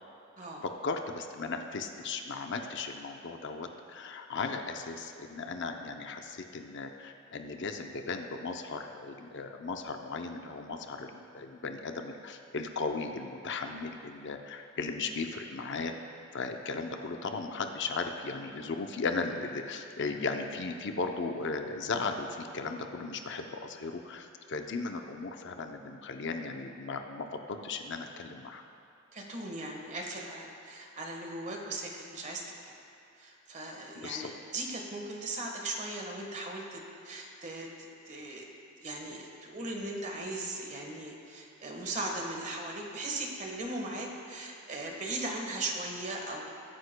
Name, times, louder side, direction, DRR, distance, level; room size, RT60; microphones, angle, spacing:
voice 1, 0.6-15.9 16.3-28.6 33.9-34.3, left 4 dB, 55° left, 5 dB, 0.6 m, -36 dB
voice 2, 29.1-32.7 33.2-38.5 38.8-46.7, right 2 dB, 35° right, 1 dB, 1.4 m, -38 dB
20.0 x 9.5 x 2.2 m, 2.5 s
head